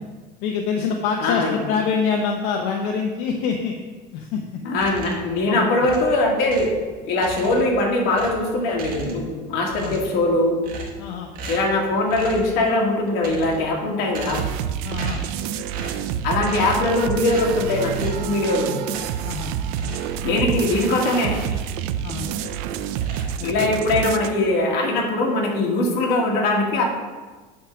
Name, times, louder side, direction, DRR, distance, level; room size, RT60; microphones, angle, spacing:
voice 1, 0.4-3.7 4.1-4.4 5.4-5.9 9.8-10.0 11.0-11.3 14.8-15.2 19.2-19.5 22.0-22.3 23.4-23.7, left 6 dB, 80° left, 2 dB, 0.8 m, -25 dB
voice 2, 1.2-1.6 4.7-6.7 7.0-10.6 11.5-14.5 16.2-18.7 20.2-21.4 23.4-26.8, left 2 dB, 60° left, -1 dB, 1.9 m, -21 dB
sound 1, 4.7-5.4 5.8-6.8 7.2-7.8 8.1-9.4 9.7-10.2 10.6-11.1 11.3-11.8 12.1-12.5 13.1-13.7 14.1-14.6 14.9-15.4 15.7-16.1 16.4-16.9 17.2-17.5 17.9-18.3 18.9-19.4 19.7-21.8 22.1-22.6 22.9-23.8, right 2 dB, 55° right, 1.5 m, -37 dB
sound 2, 14.3-24.3, right 9 dB, 85° right, 0.5 m, -28 dB
8.7 x 3.7 x 5.9 m, 1.4 s
cardioid pair, 155°, 18 cm